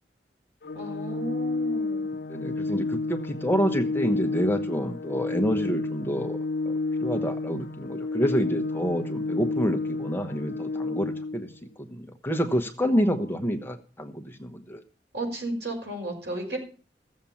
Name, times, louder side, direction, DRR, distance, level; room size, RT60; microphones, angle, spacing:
Organ, 0.6-11.6, left 3 dB, 85° left, 0.7 m, -30 dB
voice 1, 0.7-2.1 12.8-13.3 15.1-16.6, right 1 dB, 75° right, 2 dB, 5.7 m, -34 dB
voice 2, 2.3-6.4 6.6-11.5 11.8-14.8, equal, 15° left, 6 dB, 1.0 m, -28 dB
15.0 x 7.5 x 7.1 m, 0.37 s
head